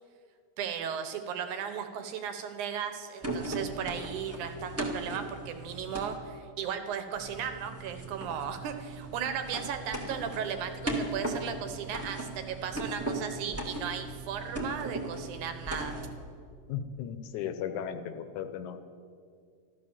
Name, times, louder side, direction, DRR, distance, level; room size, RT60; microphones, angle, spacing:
voice 1, 0.6-16.0, right 7 dB, 75° right, 8 dB, 2.4 m, -36 dB
sound 1, 3.2-6.2 7.2-16.1, right 2 dB, 5° right, 1.2 m, -37 dB
voice 2, 16.7-18.8, left 8 dB, 75° left, 9 dB, 2.2 m, -36 dB
14.0 x 12.5 x 7.2 m, 2.2 s
omnidirectional pair, 3.6 m